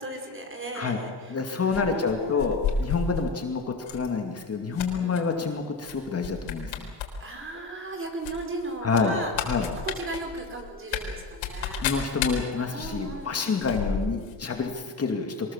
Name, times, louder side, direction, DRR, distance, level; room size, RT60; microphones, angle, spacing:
voice 1, 0.0-1.4 1.6-2.6 5.0-5.2 7.2-11.8 12.5-13.5, right 2 dB, 25° right, 4 dB, 4.8 m, -36 dB
voice 2, 1.3-6.9 8.8-9.2 9.5-9.7 11.8-15.5, left 5 dB, 30° left, 3 dB, 2.5 m, -28 dB
sound 1, 1.7-3.3 3.8-4.1 4.4-5.2 5.8-6.0 6.2-7.1 7.4-7.5 8.2-14.4 14.6-14.7, left 6 dB, 80° left, 4.0 m, -32 dB
23.5 x 20.0 x 7.4 m, 1.5 s
cardioid pair, 115°, 46 cm